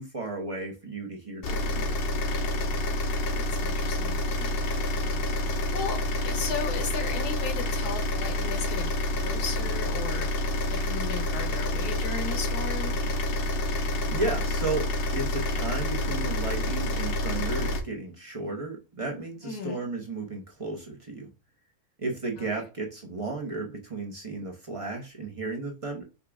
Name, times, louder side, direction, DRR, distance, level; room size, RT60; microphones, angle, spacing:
voice 1, 0.0-2.0 14.1-21.3 22.0-26.0, right 3 dB, 30° right, 0.7 m, -34 dB
sound 1, 1.4-17.8, left 1 dB, 50° left, 0.7 m, -28 dB
voice 2, 2.9-6.0 6.2-10.3 10.7-13.0 19.4-19.8 22.4-22.5, left 6 dB, 85° left, 1.4 m, -36 dB
5.5 x 2.4 x 3.4 m
omnidirectional pair, 1.6 m